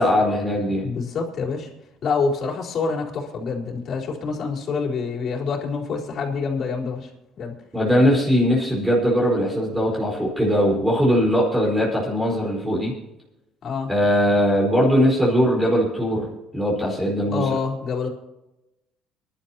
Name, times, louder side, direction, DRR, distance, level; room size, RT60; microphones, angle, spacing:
voice 1, 0.0-0.8 7.7-12.9 13.9-16.3 16.5-17.6, equal, 5° right, -4 dB, 4.6 m, -20 dB
voice 2, 0.8-1.7 2.0-7.1 7.4-7.5 13.6-13.9 17.3-18.1, left 5 dB, 50° left, -2 dB, 4.1 m, -26 dB
24.0 x 11.5 x 2.9 m, 0.96 s
cardioid pair, 105°, 0 cm